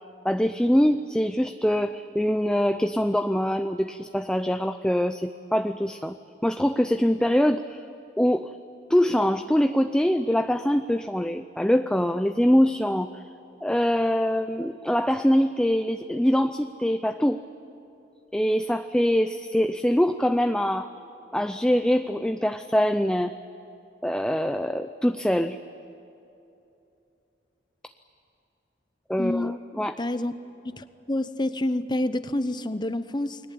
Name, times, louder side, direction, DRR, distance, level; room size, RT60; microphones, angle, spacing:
voice 1, 0.2-6.2 6.4-7.8 8.2-8.5 8.9-13.2 13.6-17.4 18.3-20.9 21.3-23.3 24.0-25.6 29.1-29.9, equal, 5° left, 0.5 m, -23 dB
voice 2, 29.2-29.6 30.0-30.3 30.6-33.4, left 1 dB, 25° left, 0.9 m, -28 dB
29.5 x 21.0 x 8.7 m
head